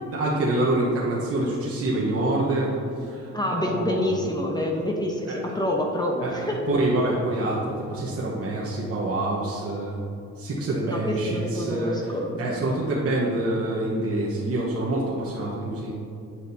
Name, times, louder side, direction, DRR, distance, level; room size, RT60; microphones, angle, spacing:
voice 1, 0.1-4.1 5.3-5.6 6.2-10.0 10.4-15.9, right 2 dB, 50° right, -5 dB, 1.2 m, -26 dB
voice 2, 3.3-6.6 10.9-12.4, left 1 dB, 15° left, 0 dB, 0.9 m, -27 dB
8.6 x 6.9 x 2.8 m, 2.7 s
cardioid pair, 90°, 30 cm